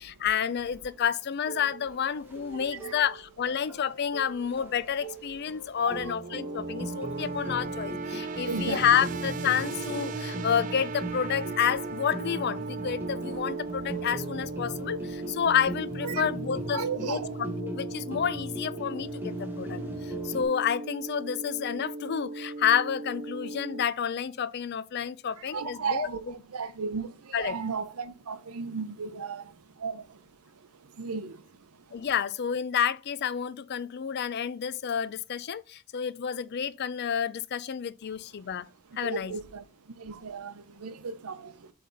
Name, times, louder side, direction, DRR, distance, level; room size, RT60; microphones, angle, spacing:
voice 1, 0.0-26.3 27.3-27.6 31.9-38.7 39.0-39.3, left 8 dB, 45° left, 0.4 m, -29 dB
sound 1, 1.5-20.4, right 1 dB, 10° right, 1.2 m, -39 dB
voice 2, 2.5-2.9 5.9-6.1 8.4-9.0 16.0-16.3 16.7-17.4 25.4-30.2 30.9-31.5 39.0-39.6 39.9-41.7, right 5 dB, 80° right, 0.7 m, -35 dB
sound 2, 6.2-23.8, right 3 dB, 35° right, 0.4 m, -38 dB
7.6 x 3.4 x 3.9 m
head